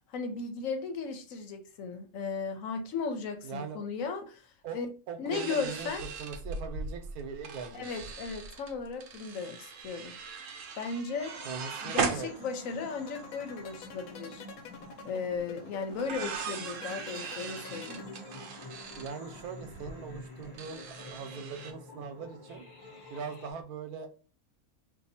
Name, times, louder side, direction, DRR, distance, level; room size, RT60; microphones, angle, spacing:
voice 1, 0.1-4.5 4.7-4.9 5.2-6.1 7.7-10.1 10.8-11.3 11.8-14.4 15.0-18.1, left 4 dB, 70° left, 1.0 m, -36 dB
voice 2, 3.4-3.8 4.6-8.1 11.4-12.3 18.9-22.6 23.1-24.1, right 6 dB, 90° right, 1.2 m, -41 dB
sound 1, 5.3-12.9 13.2-13.3 13.5-13.9 15.3-15.4 15.9-21.7, right 5 dB, 65° right, 0.9 m, -39 dB
sound 2, 11.1-23.5, left 1 dB, 25° left, 0.5 m, -48 dB
sound 3, 12.7-18.7, left 5 dB, 85° left, 1.1 m, -47 dB
2.7 x 2.5 x 4.1 m
omnidirectional pair, 1.5 m